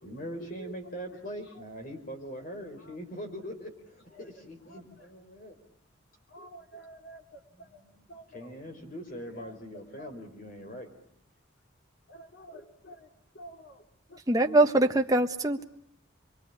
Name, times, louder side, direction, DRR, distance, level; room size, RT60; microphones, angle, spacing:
voice 1, 0.0-5.6 7.5-10.9, equal, 45° left, 4 dB, 4.9 m, -42 dB
voice 2, 6.3-7.2 8.1-8.4 12.1-13.0 13.3-13.7, right 1 dB, 60° left, 3 dB, 3.2 m, -48 dB
voice 3, 14.3-15.6, right 2 dB, 20° right, 4 dB, 1.3 m, -23 dB
26.0 x 23.0 x 8.6 m, 0.69 s
head